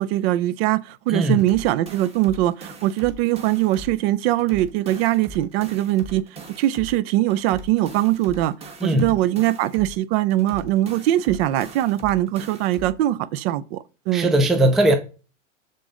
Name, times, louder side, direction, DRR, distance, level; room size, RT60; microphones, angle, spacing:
voice 1, 0.0-6.2 6.6-8.5 8.8-14.3, right 14 dB, 55° right, 0.5 m, -22 dB
voice 2, 1.1-1.4 8.8-9.1 14.1-15.0, right 1 dB, ahead, 0.3 m, -19 dB
sound 1, 1.3-4.0 4.3-7.0 7.3-10.0 10.3-13.0, right 2 dB, 15° right, 1.2 m, -40 dB
6.7 x 3.8 x 3.7 m
supercardioid pair, 130°, 37 cm